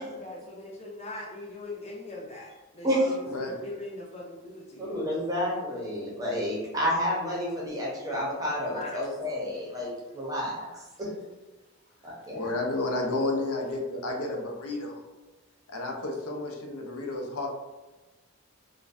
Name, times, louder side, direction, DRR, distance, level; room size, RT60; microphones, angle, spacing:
voice 1, 0.0-5.0 5.5-5.6 8.7-9.4 10.7-10.8, left 2 dB, 30° left, -2 dB, 0.5 m, -41 dB
voice 2, 3.2-3.6 12.3-15.0 15.7-17.5, left 2 dB, 85° left, 1 dB, 0.5 m, -31 dB
voice 3, 4.8-10.7 11.0-11.1 12.0-12.5, equal, 15° right, -4 dB, 0.6 m, -30 dB
2.5 x 2.1 x 2.4 m, 1.1 s
head